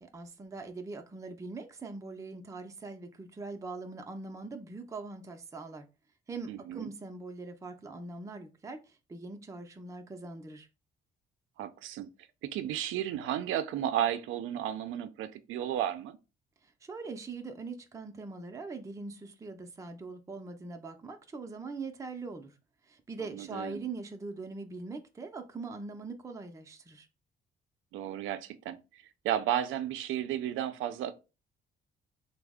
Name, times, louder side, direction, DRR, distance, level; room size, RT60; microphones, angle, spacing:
voice 1, 0.0-5.9 6.3-10.7 16.6-22.5 22.8-27.1, right 3 dB, 15° right, 0.4 m, -42 dB
voice 2, 6.5-6.9 11.6-12.1 12.4-16.2 23.3-23.8 27.9-31.1, right 11 dB, 85° right, 0.4 m, -33 dB
3.3 x 2.0 x 3.5 m
cardioid pair, 90°, 20 cm